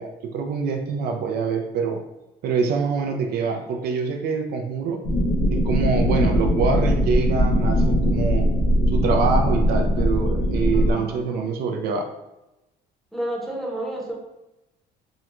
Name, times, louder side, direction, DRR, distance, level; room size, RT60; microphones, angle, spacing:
voice 1, 0.0-2.0 2.4-5.0 5.5-8.5 8.9-12.1, right 5 dB, 65° right, 4 dB, 0.4 m, -25 dB
sound 1, 5.0-10.9, equal, 80° left, 0.9 m, -20 dB
voice 2, 10.7-11.4 13.1-14.2, right 1 dB, ahead, -1 dB, 0.7 m, -31 dB
3.6 x 2.2 x 2.9 m, 0.94 s
cardioid pair, 110°, 17 cm